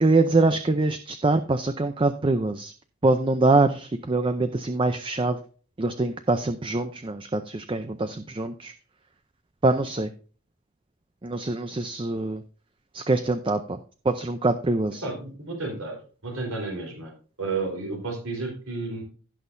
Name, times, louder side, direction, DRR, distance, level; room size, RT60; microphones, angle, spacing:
voice 1, 0.0-2.7 3.0-5.4 5.8-8.7 9.6-10.1 11.2-12.4 12.9-13.8 14.0-15.0, right 2 dB, 25° right, 9 dB, 0.5 m, -24 dB
voice 2, 15.0-17.1 17.4-19.0, right 3 dB, 75° right, 0 dB, 4.0 m, -31 dB
16.5 x 6.2 x 2.6 m, 0.39 s
head